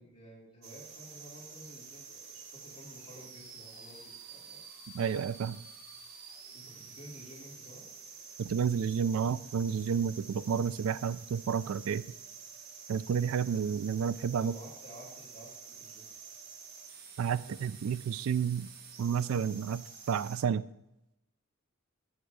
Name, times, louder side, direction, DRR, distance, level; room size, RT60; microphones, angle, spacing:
voice 1, 0.0-4.6 6.5-7.9 14.4-15.5 15.8-16.1, equal, 35° left, -6 dB, 2.6 m, -52 dB
sound 1, 0.6-20.4, right 5 dB, 45° right, 1.3 m, -49 dB
voice 2, 4.9-5.6 8.4-12.0 12.9-14.5 17.2-18.7 19.0-20.6, right 7 dB, 70° right, 16 dB, 0.3 m, -31 dB
9.6 x 3.4 x 6.8 m, 0.88 s
head